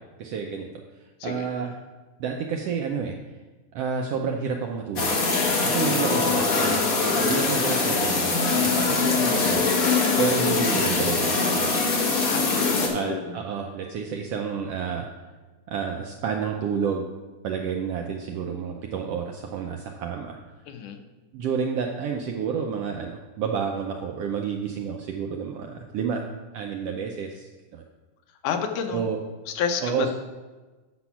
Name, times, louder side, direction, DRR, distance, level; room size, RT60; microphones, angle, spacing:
voice 1, 0.2-0.7 1.2-1.7 2.2-3.2 3.7-5.2 5.6-6.8 7.2-8.3 8.6-9.6 10.2-11.9 12.9-15.1 15.7-17.1 17.4-20.4 21.3-26.3 26.5-27.8 28.9-29.2 29.8-30.1, right 6 dB, 85° right, 2 dB, 1.3 m, -30 dB
sound 1, 5.0-12.9, left 3 dB, 45° left, 1.1 m, -22 dB
voice 2, 12.2-13.3 20.7-21.0 28.4-29.1 29.5-30.1, left 7 dB, 85° left, 5 dB, 2.4 m, -30 dB
8.6 x 6.2 x 5.7 m, 1.3 s
omnidirectional pair, 3.5 m